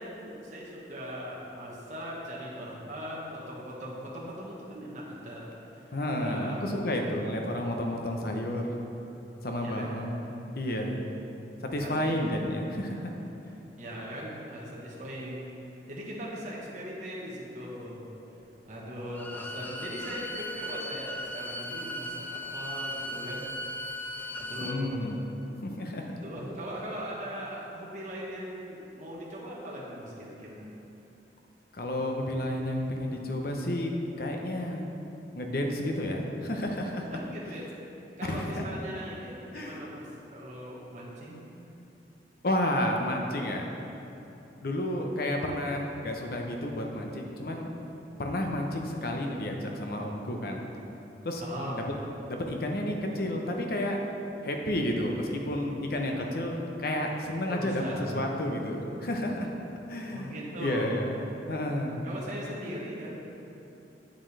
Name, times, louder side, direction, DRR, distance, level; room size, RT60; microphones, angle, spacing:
voice 1, 0.0-5.9 6.2-6.7 9.6-9.9 11.8-12.1 13.8-15.5 15.9-18.1 18.6-23.4 24.3-25.1 26.2-30.6 37.1-37.6 38.2-41.4 51.4-51.8 57.5-58.1 60.1-61.0 62.0-63.3, equal, 45° right, -5 dB, 1.2 m, -39 dB
voice 2, 5.9-8.8 9.4-11.1 11.6-13.1 24.6-25.2 25.6-26.1 31.7-33.9 34.2-34.9 35.3-37.2 38.3-38.6 39.5-39.9 42.4-43.7 44.6-47.7 48.2-50.7 51.2-51.4 51.7-51.8 52.3-54.0 54.4-59.5 59.9-61.2 61.5-62.0, left 1 dB, 60° left, 2 dB, 0.8 m, -31 dB
Bowed string instrument, 19.1-24.8, left 1 dB, 10° left, 0.4 m, -37 dB
8.7 x 7.6 x 3.3 m, 2.9 s
head